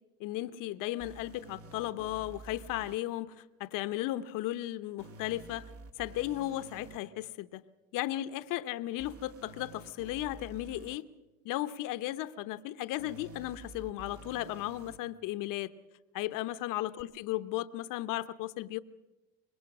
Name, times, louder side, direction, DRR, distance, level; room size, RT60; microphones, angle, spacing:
voice 1, 0.2-3.3 3.6-5.7 6.0-7.6 7.9-11.1 11.4-15.7 16.1-18.8, left 15 dB, 60° left, 13 dB, 1.0 m, -35 dB
sound 1, 1.0-3.0 5.0-7.0 9.0-11.0 13.0-15.0 17.0-17.1, right 3 dB, 40° right, 1.8 m, -50 dB
25.0 x 21.0 x 6.1 m, 1.1 s
supercardioid pair, 90°, 35 cm